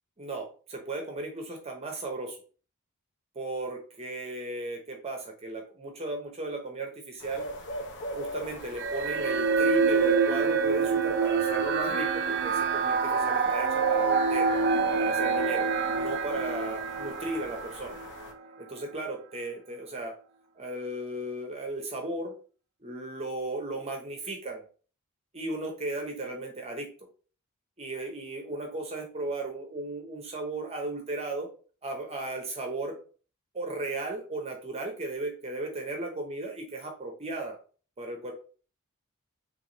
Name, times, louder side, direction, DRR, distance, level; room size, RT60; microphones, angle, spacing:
voice 1, 0.2-2.4 3.3-7.5 8.1-14.5 15.0-15.7 15.9-18.0 18.6-20.1 20.5-22.3 22.8-24.6 25.3-26.9 27.8-31.5 31.8-33.0 33.5-37.6 38.0-38.3, right 2 dB, 30° right, 2 dB, 0.8 m, -36 dB
sound 1, 7.2-18.3, equal, 55° left, 0.8 m, -41 dB
sound 2, 8.8-18.3, right 5 dB, 50° right, 0.5 m, -26 dB
3.4 x 3.2 x 4.0 m, 0.39 s
head